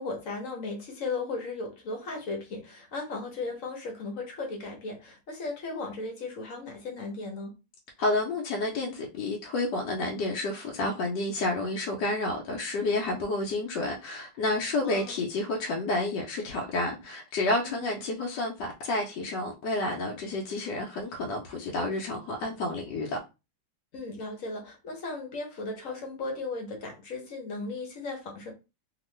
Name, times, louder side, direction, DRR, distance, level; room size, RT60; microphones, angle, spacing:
voice 1, 0.0-7.5 14.8-15.2 17.6-18.0 23.9-28.5, left 3 dB, 55° left, 1.0 m, -36 dB
voice 2, 8.0-23.2, left 2 dB, 80° left, 1.2 m, -30 dB
2.9 x 2.4 x 3.1 m
omnidirectional pair, 1.9 m